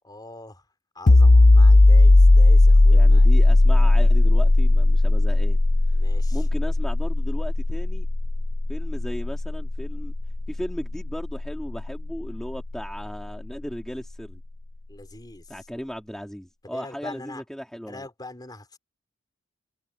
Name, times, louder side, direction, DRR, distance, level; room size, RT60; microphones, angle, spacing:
voice 1, 0.0-0.6 0.9-3.3 5.9-6.4 14.9-15.5 16.6-17.4 17.9-18.8, left 2 dB, 20° left, 4.4 m, -42 dB
sound 1, 1.1-12.5, left 2 dB, 45° left, 0.7 m, -17 dB
voice 2, 2.9-5.6 6.3-8.1 8.7-10.1 10.5-14.4 15.5-18.1, equal, 5° left, 2.9 m, -36 dB
head